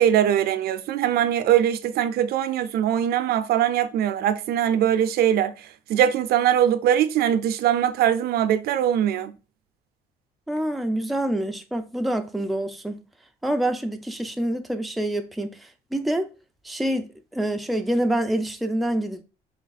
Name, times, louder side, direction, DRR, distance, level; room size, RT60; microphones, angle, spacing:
voice 1, 0.0-9.3, right 10 dB, 65° right, 0.5 m, -22 dB
voice 2, 10.5-13.0 13.4-15.6 15.9-16.3 16.6-19.2, right 1 dB, ahead, 0.4 m, -26 dB
3.4 x 3.1 x 4.0 m
cardioid pair, 110°, 17 cm